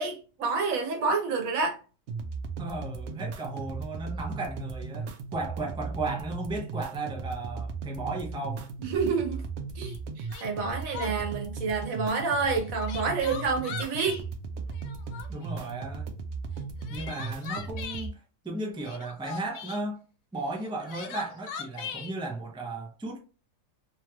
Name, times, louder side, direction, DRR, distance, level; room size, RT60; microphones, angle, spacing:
voice 1, 0.0-1.8 8.8-9.4 9.8-14.2, right 4 dB, 85° right, 1.3 m, -28 dB
sound 1, 2.1-18.1, right 4 dB, 65° right, 0.8 m, -37 dB
voice 2, 2.6-8.7 15.3-16.1 16.9-20.1 20.3-23.2, right 2 dB, 5° right, 0.4 m, -35 dB
Crying sobbing, 9.9-10.0 10.3-11.4 12.6-14.2 14.7-15.5 16.6-18.1 18.8-19.8 20.6-22.1, left 7 dB, 80° left, 1.0 m, -40 dB
3.0 x 2.9 x 2.3 m
omnidirectional pair, 1.4 m